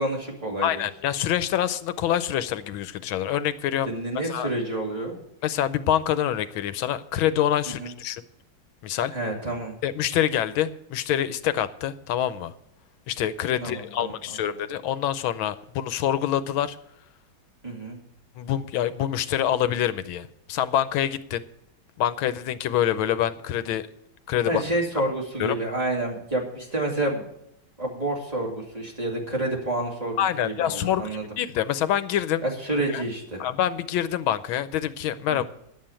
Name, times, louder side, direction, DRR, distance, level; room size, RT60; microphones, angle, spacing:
voice 1, 0.0-0.8 3.9-5.2 7.7-7.9 9.1-9.7 13.6-14.1 17.6-18.0 24.5-27.2 27.8-31.2 32.4-33.4 35.3-35.4, right 1 dB, 20° right, -2 dB, 2.4 m, -29 dB
voice 2, 0.6-3.9 4.3-4.5 5.4-8.2 8.8-9.1 9.8-12.5 13.1-16.8 18.4-21.4 22.0-23.9 24.3-24.6 25.4-25.6 30.2-32.4 32.9-33.0 33.4-35.4, left 11 dB, 90° left, 14 dB, 1.5 m, -26 dB
10.0 x 7.6 x 8.8 m, 0.77 s
omnidirectional pair, 2.2 m